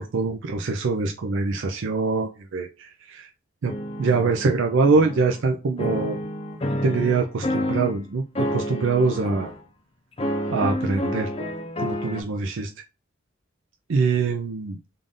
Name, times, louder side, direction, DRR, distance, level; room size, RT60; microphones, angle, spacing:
voice 1, 0.0-3.3 3.6-3.7 4.0-6.2 6.8-9.5 10.5-11.3 11.8-12.7 13.9-14.8, right 4 dB, 65° right, 3 dB, 0.5 m, -24 dB
sound 1, 3.7-5.4 5.8-8.0 8.3-9.6 10.2-12.2, left 1 dB, 30° left, 0.5 m, -29 dB
3.7 x 2.5 x 3.5 m, 0.30 s
head